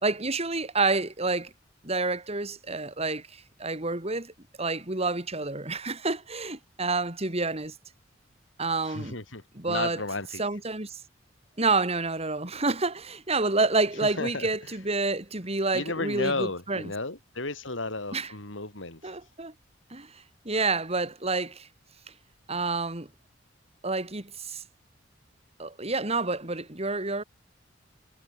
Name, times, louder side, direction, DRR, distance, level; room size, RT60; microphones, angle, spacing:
voice 1, 0.0-1.5 1.8-4.3 4.6-7.7 8.6-9.2 9.6-10.0 10.4-11.0 11.6-16.8 18.1-18.3 19.0-19.5 19.9-21.7 22.5-23.1 23.8-24.6 25.6-27.2, right 3 dB, 35° right, 3.5 m, -28 dB
voice 2, 8.8-10.4 14.0-14.5 15.7-19.2, left 3 dB, 90° left, 4.4 m, -33 dB
head